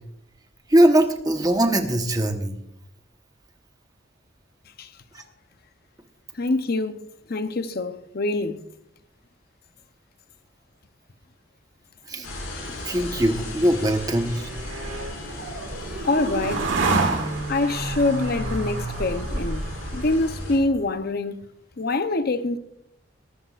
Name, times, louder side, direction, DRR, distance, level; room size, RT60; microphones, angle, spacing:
voice 1, 0.7-2.6 12.1-12.3 12.8-14.5, right 1 dB, 20° right, 1.1 m, -21 dB
voice 2, 6.3-7.0 7.3-8.6 14.9-16.7 17.5-19.7 19.9-21.4 21.8-22.6, left 2 dB, 50° left, 0.8 m, -25 dB
sound 1, 12.2-20.6, left 2 dB, 80° left, 5.2 m, -38 dB
sound 2, 13.4-20.8, right 2 dB, 65° right, 2.0 m, -29 dB
21.5 x 13.5 x 2.5 m
head